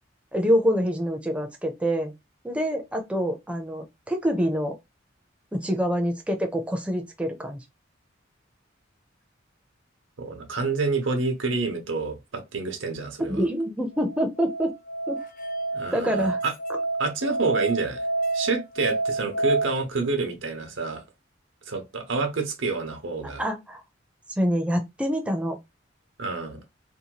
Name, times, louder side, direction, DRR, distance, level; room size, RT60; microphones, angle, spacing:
voice 1, 0.3-2.1 2.4-4.8 5.5-7.6 13.3-14.7 15.1-15.2 15.9-16.4 23.4-23.8 24.4-25.6, equal, 5° right, 0.4 m, -26 dB
voice 2, 10.2-13.5 15.7-16.5 17.0-18.0 18.3-21.0 21.7-23.4 26.2-26.6, right 3 dB, 85° right, 0.7 m, -28 dB
Musical instrument, 14.0-19.6, right 2 dB, 45° left, 0.5 m, -28 dB
2.7 x 2.2 x 2.8 m
head